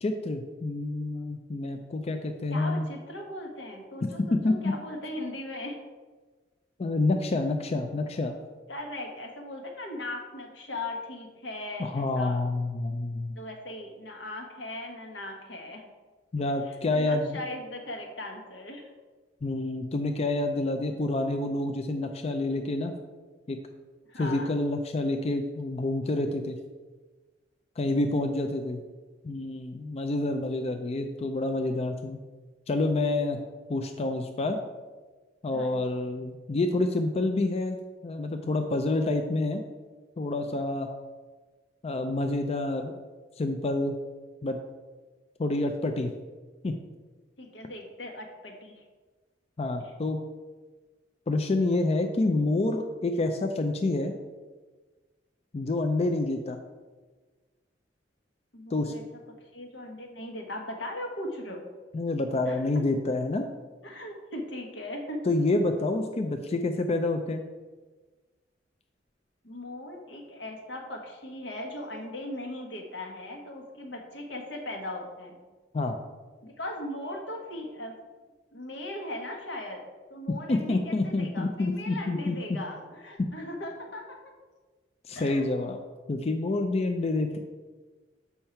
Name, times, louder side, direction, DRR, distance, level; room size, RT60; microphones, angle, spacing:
voice 1, 0.0-2.9 4.3-4.7 6.8-8.4 11.8-13.4 16.3-17.4 19.4-23.0 23.5-23.6 24.2-26.6 27.8-28.8 29.2-32.2 32.7-33.4 33.7-34.6 35.4-39.6 40.2-40.9 41.8-42.9 43.4-43.9 44.4-44.6 45.4-46.1 46.6-46.7 49.6-50.2 51.3-54.1 55.5-56.6 58.7-58.9 61.9-63.5 65.3-67.4 75.7-76.0 80.5-82.6 83.2-83.3 85.0-85.8 86.1-87.4, left 2 dB, 35° left, 5 dB, 0.4 m, -28 dB
voice 2, 2.5-5.8 8.7-12.4 13.4-15.9 16.7-18.9 24.1-24.5 35.5-36.0 47.4-48.8 49.8-49.9 58.5-59.0 59.5-61.6 62.5-62.6 63.8-65.2 69.4-75.4 76.4-78.0 78.5-79.8 80.1-84.2 85.1-85.4, left 1 dB, 80° left, 2 dB, 1.4 m, -38 dB
7.1 x 5.6 x 4.4 m, 1.3 s
head